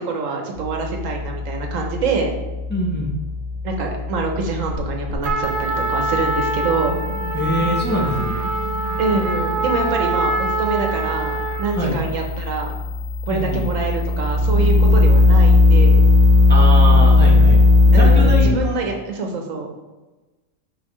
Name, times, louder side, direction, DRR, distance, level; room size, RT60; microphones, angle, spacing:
voice 1, 0.0-2.3 3.6-6.9 9.0-12.7 13.3-16.0 17.9-19.7, right 4 dB, 75° right, 2 dB, 1.3 m, -25 dB
sound 1, 0.6-18.4, left 2 dB, 30° right, 1.4 m, -18 dB
voice 2, 2.7-3.1 7.3-8.4 11.7-12.0 13.3-13.7 16.5-18.8, equal, 10° left, -3 dB, 0.8 m, -24 dB
Trumpet, 5.2-11.8, right 2 dB, 50° right, 0.6 m, -25 dB
5.6 x 5.5 x 3.1 m, 1.1 s
omnidirectional pair, 1.4 m